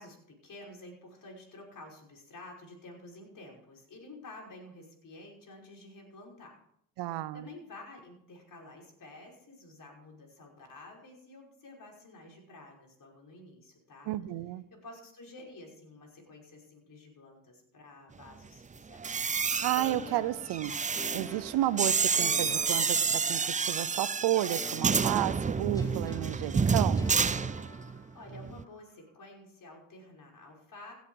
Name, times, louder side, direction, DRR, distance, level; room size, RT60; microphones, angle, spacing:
voice 1, 0.0-6.6 7.0-14.1 14.7-19.0 28.1-30.9, left 2 dB, 50° left, 0 dB, 5.7 m, -50 dB
voice 2, 7.0-7.5 14.1-14.6 19.6-20.7 21.1-27.1, right 14 dB, 70° right, 15 dB, 0.9 m, -32 dB
sound 1, 18.9-28.0 28.3-28.6, right 5 dB, 20° right, 0.5 m, -29 dB
sound 2, 19.8-23.7 24.5-28.4, equal, 10° left, 2.7 m, -46 dB
17.0 x 8.5 x 4.9 m, 0.70 s
supercardioid pair, 65°, 42 cm